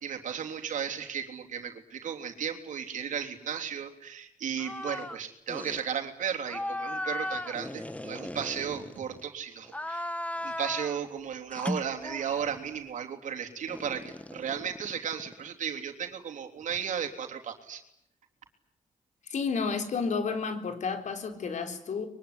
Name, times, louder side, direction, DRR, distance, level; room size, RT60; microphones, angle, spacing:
voice 1, 0.0-10.1 10.4-17.8, right 8 dB, 75° right, 3 dB, 3.4 m, -35 dB
sound 1, 4.6-5.2 5.5-5.8 6.4-9.2 9.6-11.0 11.5-12.6 13.7-15.5, left 1 dB, 10° left, 1.3 m, -37 dB
voice 2, 19.3-22.1, left 5 dB, 65° left, 6 dB, 4.1 m, -31 dB
24.0 x 23.0 x 10.0 m, 0.77 s
cardioid pair, 80°, 13 cm